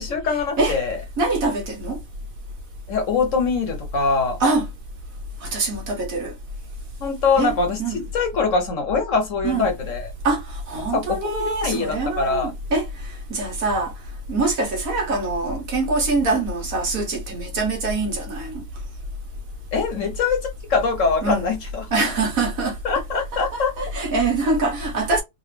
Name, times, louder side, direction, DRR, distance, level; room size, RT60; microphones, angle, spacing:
voice 1, 0.0-1.0 2.9-4.4 7.0-10.1 10.9-12.5 19.7-20.4 20.7-21.9 22.8-23.7, left 4 dB, 55° left, 1.1 m, -23 dB
voice 2, 1.2-2.0 4.4-4.7 5.4-6.3 7.3-8.1 9.4-9.7 10.2-10.4 10.7-12.8 13.3-13.9 14.3-18.6 21.2-21.5 21.9-22.7 23.1-25.2, right 3 dB, 60° right, 1.6 m, -24 dB
3.8 x 2.4 x 3.2 m
omnidirectional pair, 1.7 m